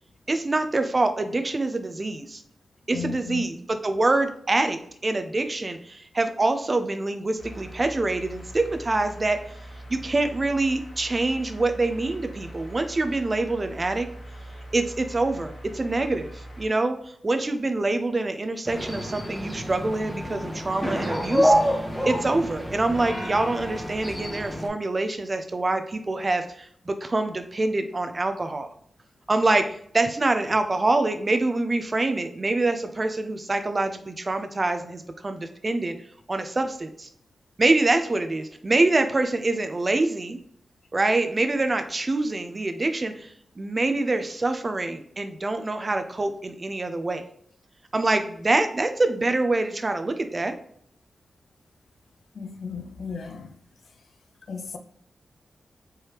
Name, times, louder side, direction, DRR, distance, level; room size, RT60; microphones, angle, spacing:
voice 1, 0.3-2.4 2.9-9.4 9.9-14.1 14.7-21.8 22.1-28.7 29.3-36.0 36.3-37.1 37.6-40.4 40.9-47.2 47.9-50.6, right 2 dB, 25° right, 0.4 m, -25 dB
voice 2, 2.9-3.5 52.3-53.5 54.5-54.8, left 6 dB, 65° left, 0.5 m, -35 dB
sound 1, 7.4-16.7, right 1 dB, 40° left, 1.2 m, -42 dB
sound 2, 18.7-24.7, equal, ahead, 0.8 m, -27 dB
4.5 x 3.3 x 2.9 m
wide cardioid pair, 145°, 0 cm